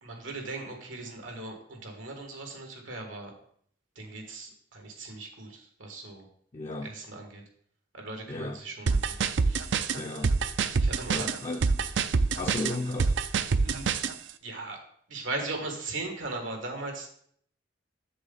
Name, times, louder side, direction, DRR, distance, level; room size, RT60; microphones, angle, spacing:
voice 1, 0.0-3.3 4.0-6.3 6.8-7.4 7.9-9.2 9.5-9.7 10.8-11.4 13.6-13.9 14.4-14.8 15.1-17.1, right 2 dB, 90° right, 1.9 m, -38 dB
voice 2, 6.5-6.9 8.3-8.6 9.9-10.3 11.1-11.9 12.4-13.2, left 2 dB, 30° left, 0.5 m, -34 dB
sound 1, 8.9-14.1, right 5 dB, 70° right, 0.5 m, -26 dB
7.7 x 6.8 x 4.1 m
head